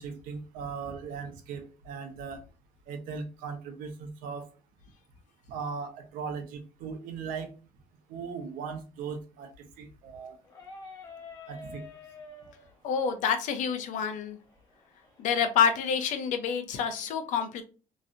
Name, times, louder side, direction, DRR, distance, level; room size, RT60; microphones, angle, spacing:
voice 1, 0.0-2.4 2.9-4.5 5.5-7.5 8.1-10.4 11.5-11.8, right 5 dB, 85° right, 5 dB, 0.8 m, -38 dB
sound 1, 10.4-16.1, left 3 dB, 25° left, 0.7 m, -49 dB
voice 2, 12.8-14.4 15.2-17.6, left 7 dB, 65° left, 7 dB, 0.7 m, -27 dB
3.0 x 2.5 x 2.6 m, 0.34 s
cardioid pair, 150°, 14 cm